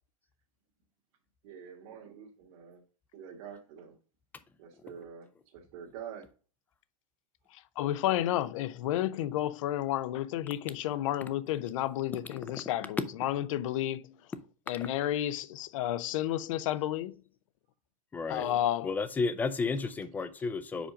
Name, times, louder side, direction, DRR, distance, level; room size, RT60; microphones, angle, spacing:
voice 1, 1.4-2.8 3.1-4.0 4.6-6.3 18.3-18.6 20.4-20.5, right 8 dB, 55° right, 1.6 m, -46 dB
voice 2, 7.8-14.2 14.7-17.1 18.3-18.9, left 13 dB, 65° left, 0.6 m, -31 dB
voice 3, 18.1-18.4 18.8-20.9, left 4 dB, 10° left, 0.4 m, -32 dB
5.1 x 5.0 x 4.9 m
supercardioid pair, 160°, 18 cm